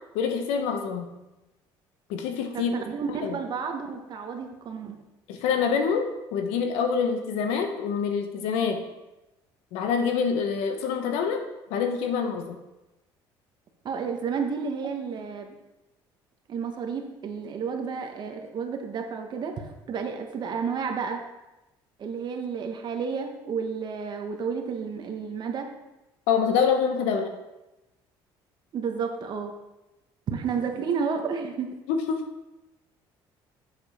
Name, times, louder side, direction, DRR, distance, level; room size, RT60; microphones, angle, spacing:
voice 1, 0.1-1.0 2.1-2.7 3.2-3.4 5.3-8.8 9.7-11.4 11.7-12.6 26.3-27.3 31.9-32.2, left 6 dB, 90° left, 6 dB, 1.1 m, -26 dB
voice 2, 2.5-5.0 13.8-15.5 16.5-19.5 19.9-21.2 22.0-25.7 28.7-29.5 30.3-31.7, right 6 dB, 50° right, 4 dB, 1.3 m, -31 dB
7.4 x 7.1 x 4.3 m, 0.99 s
cardioid pair, 105°, 10 cm